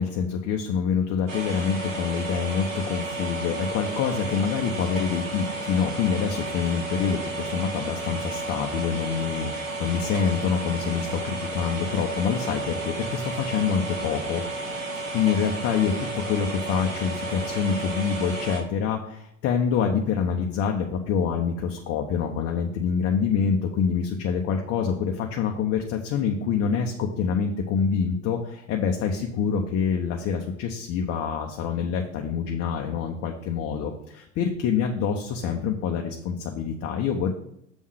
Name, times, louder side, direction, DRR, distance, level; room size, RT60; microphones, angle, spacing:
voice 1, 0.0-14.4 15.1-37.3, left 6 dB, 40° left, 2 dB, 0.9 m, -26 dB
sound 1, 1.3-18.6, right 2 dB, 85° right, 1.7 m, -32 dB
7.1 x 3.7 x 6.2 m, 0.75 s
hypercardioid pair, 85°, 38 cm